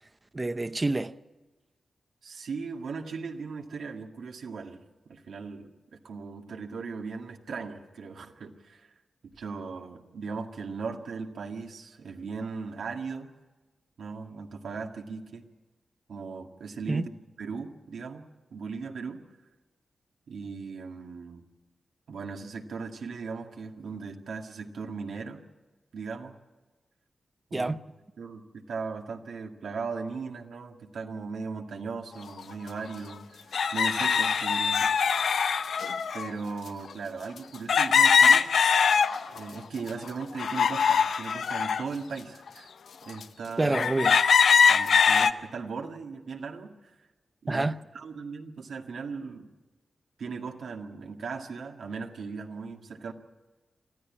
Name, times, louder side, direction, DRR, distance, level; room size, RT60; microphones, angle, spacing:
voice 1, 0.3-1.1 16.9-17.1 27.5-27.8 43.6-44.2 47.5-47.8, right 2 dB, 25° right, 0.7 m, -27 dB
voice 2, 2.2-4.8 5.1-8.9 9.2-13.3 14.0-15.4 16.1-17.1 17.4-19.2 20.3-21.4 22.1-25.4 25.9-26.3 27.5-27.7 28.2-33.5 33.7-34.9 36.1-38.8 39.3-42.7 43.0-43.8 44.7-47.0 47.4-47.7 47.9-49.5 50.2-53.1, right 4 dB, 85° right, 1.9 m, -38 dB
sound 1, 32.4-32.5 33.5-36.3 37.7-39.4 39.9-41.8 42.5-42.6 43.2-43.3 43.7-45.3, left 6 dB, 80° left, 0.7 m, -22 dB
24.0 x 14.5 x 8.7 m
wide cardioid pair, 90°, 0 cm